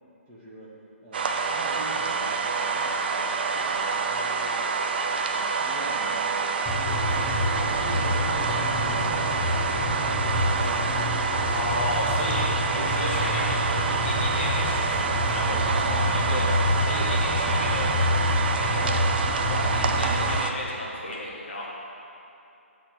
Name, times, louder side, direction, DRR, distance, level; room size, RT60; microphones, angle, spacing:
voice 1, 0.3-3.3 3.5-4.8 5.3-7.3 7.6-10.5, equal, 15° right, -7 dB, 1.4 m, -43 dB
sound 1, 1.1-20.5, right 4 dB, 45° right, 0.6 m, -27 dB
sound 2, 6.7-20.4, left 1 dB, 5° left, 0.9 m, -27 dB
voice 2, 11.5-13.6 13.9-16.5 16.8-17.9 18.5-19.0 19.3-21.7, left 1 dB, 50° left, -4 dB, 1.6 m, -33 dB
7.8 x 4.3 x 6.5 m, 2.8 s
figure-of-eight pair, 140°, 7 cm